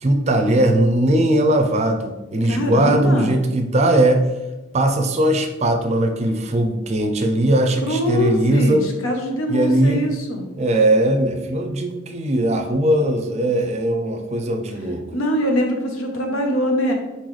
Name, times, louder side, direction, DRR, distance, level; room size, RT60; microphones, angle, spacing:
voice 1, 0.0-4.3 4.7-8.8 9.5-10.1 10.6-15.0, right 1 dB, 35° right, 5 dB, 0.4 m, -19 dB
voice 2, 2.4-3.4 7.8-10.4 15.1-16.9, equal, 90° left, 3 dB, 0.8 m, -23 dB
4.2 x 3.9 x 3.1 m, 1.1 s
head